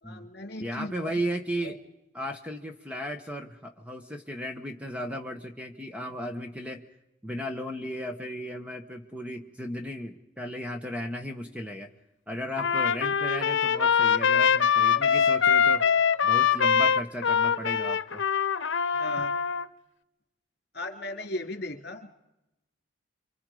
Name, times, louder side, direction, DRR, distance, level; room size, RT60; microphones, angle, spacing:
voice 1, 0.0-1.1 1.6-1.7 18.9-19.3 20.7-22.1, left 1 dB, 55° left, 5 dB, 2.9 m, -37 dB
voice 2, 0.6-1.8 2.1-6.9 7.2-11.9 12.3-15.9 16.2-18.2, equal, 5° right, 5 dB, 1.2 m, -35 dB
Trumpet, 12.6-19.7, left 7 dB, 80° left, 0.8 m, -23 dB
28.0 x 25.0 x 5.0 m, 0.90 s
head